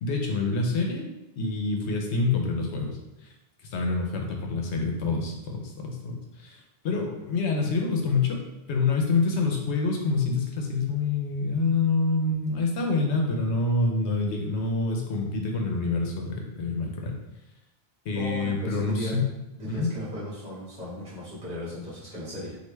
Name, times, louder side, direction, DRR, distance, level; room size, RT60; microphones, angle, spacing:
voice 1, 0.0-1.1 1.4-3.3 3.7-8.4 8.7-17.1 18.0-19.2 19.6-19.9, left 3 dB, 80° left, 2 dB, 0.9 m, -27 dB
voice 2, 18.1-19.2 19.6-22.6, equal, 35° right, -9 dB, 1.3 m, -36 dB
3.3 x 2.5 x 3.0 m, 0.95 s
omnidirectional pair, 1.1 m